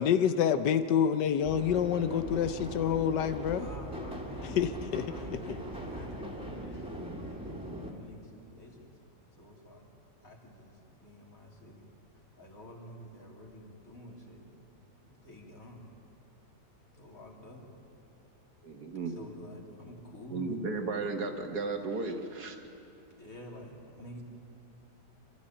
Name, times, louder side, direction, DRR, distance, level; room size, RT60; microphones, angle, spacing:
voice 1, 0.0-3.7 4.5-5.4, left 8 dB, 85° left, 10 dB, 1.4 m, -28 dB
sound 1, 1.4-7.9, right 1 dB, 5° right, 2.2 m, -40 dB
voice 2, 3.5-7.3 7.9-8.9 9.4-9.9 10.2-11.9 12.4-14.5 15.0-15.9 16.9-17.7 19.0-20.6 23.2-24.2, equal, 50° left, -1 dB, 3.2 m, -49 dB
voice 3, 18.6-19.1 20.3-22.6, right 3 dB, 65° right, 5 dB, 2.0 m, -34 dB
27.0 x 13.0 x 8.8 m, 2.6 s
omnidirectional pair, 1.8 m